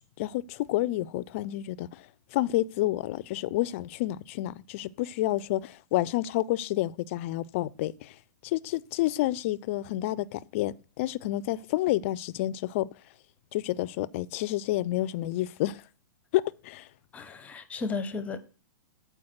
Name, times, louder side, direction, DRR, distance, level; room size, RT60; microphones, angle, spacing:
voice 1, 0.2-8.2 8.4-12.9 13.5-15.8 16.3-16.9, left 16 dB, 45° left, 0.4 m, -29 dB
voice 2, 17.1-18.4, left 4 dB, 15° left, 0.7 m, -34 dB
7.7 x 4.6 x 5.8 m
hypercardioid pair, 140°, 10 cm